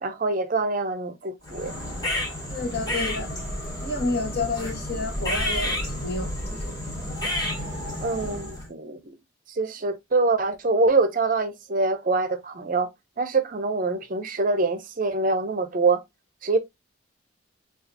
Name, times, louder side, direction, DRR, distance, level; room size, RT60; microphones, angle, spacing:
voice 1, 0.0-1.7 8.0-9.2 9.6-12.9 13.2-16.0 16.4-16.6, right 3 dB, 40° right, 0.6 m, -24 dB
sound 1, 1.4-8.7, left 1 dB, 20° left, 1.9 m, -30 dB
voice 2, 2.5-3.3 3.8-6.3 6.6-6.7, left 2 dB, 50° left, 1.5 m, -29 dB
6.8 x 2.4 x 2.6 m
head